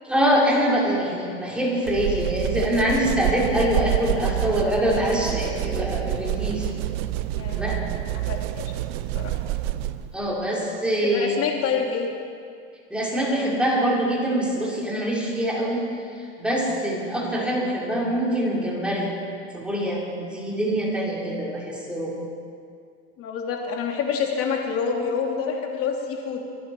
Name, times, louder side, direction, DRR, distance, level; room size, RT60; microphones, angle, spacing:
voice 1, 0.0-6.7 7.5-7.8 10.1-11.4 12.9-15.8 16.1-19.1 19.5-22.1, equal, 5° right, -5 dB, 4.9 m, -24 dB
sound 1, 1.9-10.1, right 14 dB, 65° right, 0.8 m, -28 dB
voice 2, 7.3-7.7 8.3-8.6 9.1-9.3 11.0-12.1 23.2-26.4, left 6 dB, 45° left, 1 dB, 2.9 m, -27 dB
25.0 x 11.5 x 4.7 m, 2.3 s
supercardioid pair, 120°, 33 cm